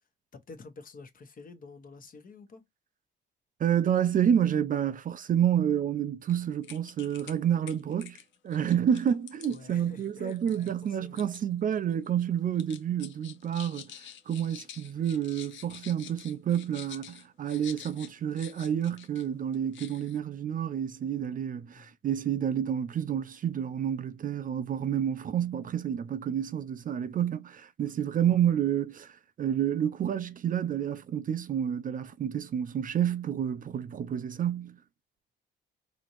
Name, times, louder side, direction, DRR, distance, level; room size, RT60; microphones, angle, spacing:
voice 1, 0.3-2.7 9.5-11.2 21.7-21.9 34.2-34.3, left 3 dB, 45° left, 1.1 m, -48 dB
voice 2, 3.6-8.2 8.4-13.9 14.3-34.8, right 9 dB, 45° right, 0.4 m, -29 dB
sound 1, 6.2-6.3 6.6-7.4 7.7-11.4 11.7-12.2 12.6-19.3 19.5-20.2, left 10 dB, 70° left, 0.7 m, -48 dB
4.1 x 2.8 x 3.0 m
cardioid pair, 90°, 20 cm